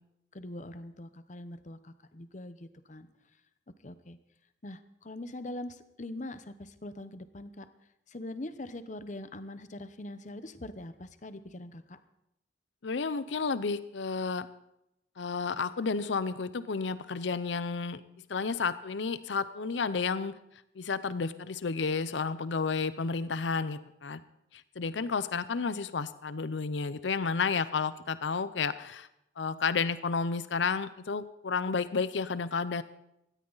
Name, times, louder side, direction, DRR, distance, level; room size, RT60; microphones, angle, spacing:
voice 1, 0.3-3.1 3.8-4.2 4.6-7.7 8.1-12.0, left 1 dB, 40° left, 11 dB, 0.9 m, -42 dB
voice 2, 12.8-14.5 15.2-18.0 18.3-20.3 20.8-24.2 24.8-29.1 29.4-32.8, left 5 dB, 80° left, 14 dB, 0.6 m, -31 dB
17.5 x 13.5 x 4.0 m, 0.82 s
head